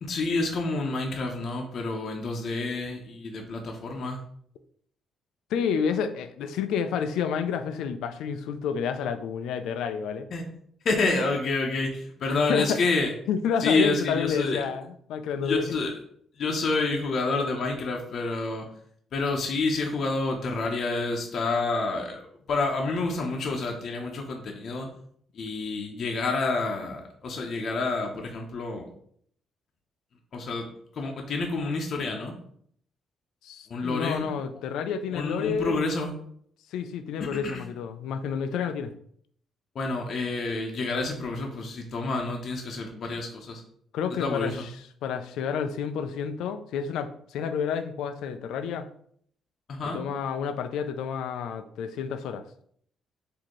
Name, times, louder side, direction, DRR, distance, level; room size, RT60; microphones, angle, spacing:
voice 1, 0.0-4.2 10.3-10.4 10.8-13.1 13.6-14.6 15.4-15.9 16.4-18.7 19.1-24.9 25.3-28.9 30.3-32.3 33.7-34.3 35.1-36.2 37.2-37.6 39.7-43.6 44.2-44.6 49.7-50.0, left 3 dB, 60° left, 1 dB, 0.7 m, -28 dB
voice 2, 5.5-10.3 12.5-12.8 13.3-15.8 33.4-35.8 36.7-38.9 43.9-44.7 45.0-48.9 49.9-52.4, left 7 dB, 85° left, 10 dB, 0.3 m, -29 dB
4.1 x 2.7 x 3.0 m, 0.64 s
cardioid pair, 90°, 0 cm